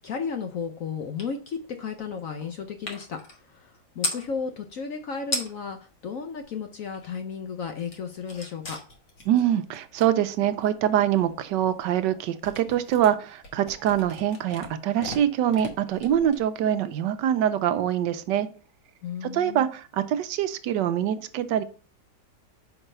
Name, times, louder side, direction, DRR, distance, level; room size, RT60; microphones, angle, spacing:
voice 1, 0.0-3.2 3.5-5.8 6.0-8.8 19.0-19.7, left 6 dB, 65° left, 5 dB, 0.9 m, -34 dB
sound 1, 1.2-1.3 1.6-4.3 5.0-5.1 5.2-5.8 6.2-7.3 7.6-16.8, left 2 dB, 50° left, 1.8 m, -38 dB
voice 2, 9.3-18.5 19.2-21.6, right 10 dB, 75° right, 12 dB, 1.2 m, -24 dB
5.4 x 4.8 x 5.4 m, 0.38 s
omnidirectional pair, 2.0 m